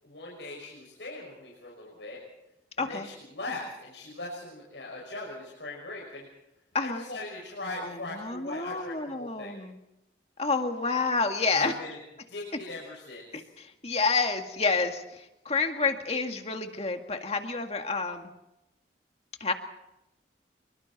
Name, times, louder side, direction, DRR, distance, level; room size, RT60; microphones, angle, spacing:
voice 1, 0.0-2.2 2.8-6.3 6.8-9.6 11.5-12.0 12.3-13.4, left 2 dB, 85° left, -3 dB, 6.2 m, -40 dB
voice 2, 2.8-3.1 6.7-7.0 7.8-9.8 10.4-11.7 13.3-18.3 19.4-19.5, left 4 dB, 35° left, 5 dB, 2.1 m, -29 dB
27.0 x 23.5 x 4.3 m, 0.87 s
head